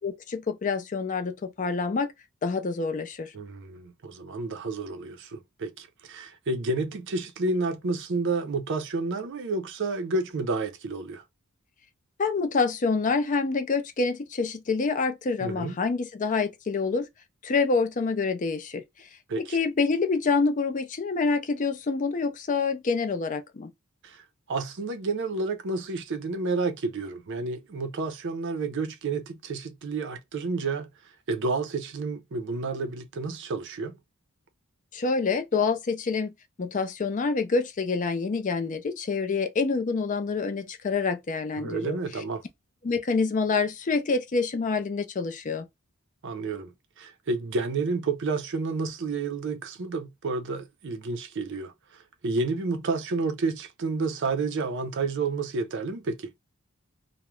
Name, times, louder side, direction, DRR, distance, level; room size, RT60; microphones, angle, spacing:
voice 1, 0.0-2.1 2.4-3.3 12.2-17.1 17.4-18.8 19.4-23.7 34.9-36.3 36.6-42.0 42.8-45.7, left 4 dB, 35° left, 0.4 m, -27 dB
voice 2, 3.3-11.2 15.4-15.8 19.3-19.6 24.0-30.9 31.3-34.0 41.6-42.4 46.2-56.3, right 3 dB, 55° right, 0.5 m, -30 dB
2.3 x 2.0 x 2.9 m
head